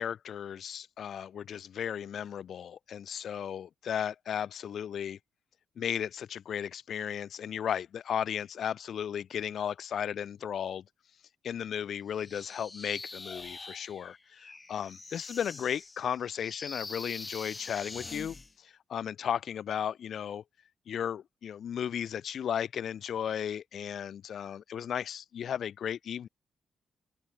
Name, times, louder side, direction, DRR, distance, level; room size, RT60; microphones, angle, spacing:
voice 1, 0.0-5.2 5.8-10.8 11.4-20.4 20.9-26.3, left 9 dB, 60° left, 3.8 m, -35 dB
sound 1, 12.2-18.5, left 3 dB, 20° left, 5.7 m, -44 dB
cardioid pair, 130°, 0 cm